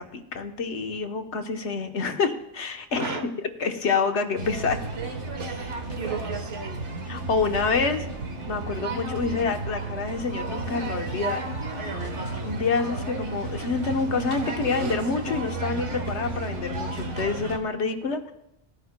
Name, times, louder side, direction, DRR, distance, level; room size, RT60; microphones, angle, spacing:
voice 1, 0.0-3.1 3.6-4.8 7.1-8.0 8.5-11.4 12.4-18.3, left 4 dB, 75° left, 5 dB, 1.3 m, -27 dB
voice 2, 3.0-3.3 5.3-7.1 7.7-7.9, right 3 dB, 65° right, 5 dB, 1.5 m, -36 dB
sound 1, 4.4-17.6, right 3 dB, 85° right, 1.7 m, -32 dB
18.0 x 14.0 x 2.2 m, 0.80 s
omnidirectional pair, 1.2 m